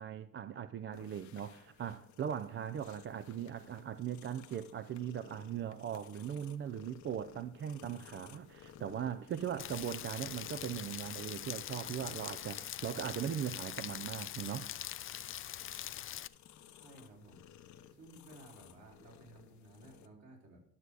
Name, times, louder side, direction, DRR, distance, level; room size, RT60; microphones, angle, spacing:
voice 1, 0.0-14.7, right 9 dB, 40° right, 0.5 m, -39 dB
sound 1, 0.9-20.1, left 9 dB, 70° left, 0.9 m, -57 dB
Rain, 9.6-16.3, left 11 dB, 45° left, 0.5 m, -43 dB
voice 2, 16.7-17.5 17.9-20.6, right 1 dB, 60° right, 3.9 m, -56 dB
12.0 x 6.7 x 4.8 m
cardioid pair, 85°, 30 cm